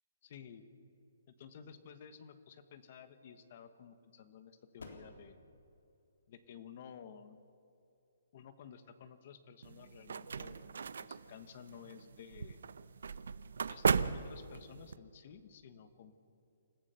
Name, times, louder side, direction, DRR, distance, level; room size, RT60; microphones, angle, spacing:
voice 1, 0.2-0.6 1.3-5.4 6.3-7.4 8.3-12.6 13.6-16.1, left 7 dB, 30° left, 11 dB, 1.2 m, -54 dB
sound 1, 3.9-9.5, left 3 dB, 90° left, 3.5 m, -60 dB
sound 2, 9.6-15.0, right 5 dB, 65° right, 0.7 m, -37 dB
28.0 x 14.5 x 6.8 m, 2.6 s
hypercardioid pair, 180°, 0 cm